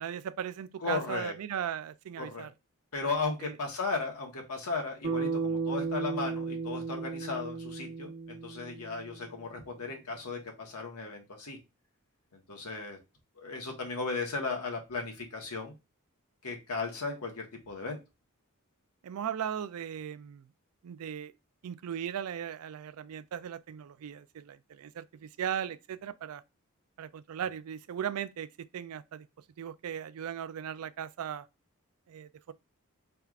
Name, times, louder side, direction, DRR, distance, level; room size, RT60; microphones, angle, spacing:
voice 1, 0.0-2.5 3.4-3.6 19.0-20.5 20.8-21.3 21.6-26.4 27.0-29.3 29.6-31.5 32.1-32.5, right 8 dB, 75° right, 0.4 m, -37 dB
voice 2, 0.8-1.3 2.2-2.5 2.9-11.6 12.3-13.0 13.4-15.7 16.4-18.0, left 4 dB, 85° left, 1.3 m, -36 dB
Bass guitar, 5.0-9.4, right 4 dB, 50° right, 0.9 m, -35 dB
4.6 x 3.4 x 2.4 m
head